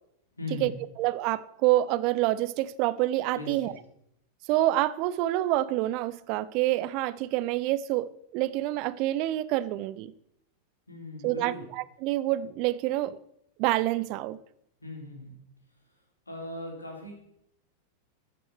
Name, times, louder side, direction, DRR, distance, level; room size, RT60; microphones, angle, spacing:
voice 1, 0.3-0.9 3.3-3.8 10.9-11.7 14.8-15.4 16.3-17.1, left 2 dB, 80° left, 3.9 m, -39 dB
voice 2, 1.0-3.7 4.5-10.1 11.2-11.5 12.0-13.2 13.6-14.4, right 15 dB, 45° right, 0.6 m, -27 dB
13.5 x 6.8 x 6.6 m
figure-of-eight pair, 90°, 0 cm